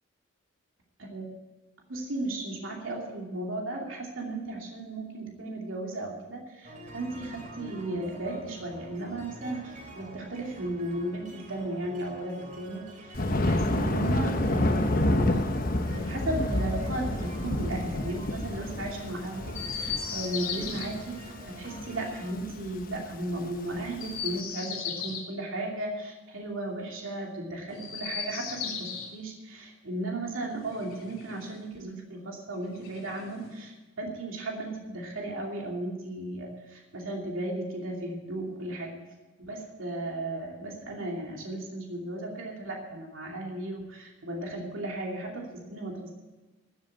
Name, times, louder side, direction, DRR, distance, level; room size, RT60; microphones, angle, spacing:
voice 1, 1.9-15.3 15.8-21.2 21.5-39.0 39.4-46.2, right 1 dB, 70° right, 0 dB, 2.7 m, -35 dB
sound 1, 6.6-22.3, right 1 dB, 40° right, 2.8 m, -47 dB
Thunder, 13.1-24.3, left 1 dB, 40° left, 1.0 m, -29 dB
Chirp tweet, 19.5-20.9 23.9-25.3 27.7-29.1 30.5-31.6 32.7-33.6, left 6 dB, 75° left, 2.8 m, -37 dB
14.0 x 8.2 x 8.6 m, 1.2 s
head